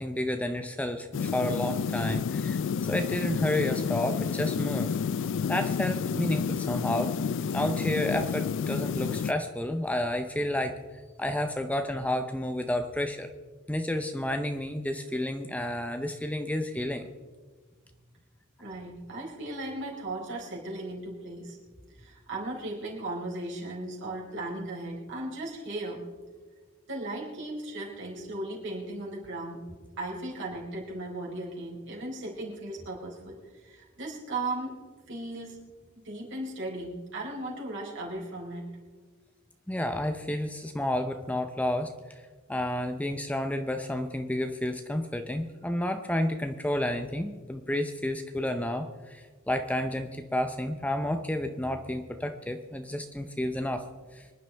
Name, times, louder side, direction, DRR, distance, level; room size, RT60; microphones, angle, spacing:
voice 1, 0.0-2.6 2.9-4.9 5.5-7.1 7.5-10.7 11.2-13.3 13.7-17.1 39.7-42.2 42.5-53.8 54.1-54.3, left 1 dB, 5° left, 7 dB, 0.6 m, -30 dB
sound 1, 1.1-9.3, left 6 dB, 55° left, 0.3 m, -30 dB
voice 2, 18.6-21.6 21.9-26.0 26.9-29.6 30.0-34.8 35.1-35.6 36.0-38.7, right 2 dB, 55° right, -2 dB, 4.3 m, -37 dB
25.0 x 11.0 x 3.4 m, 1.4 s
head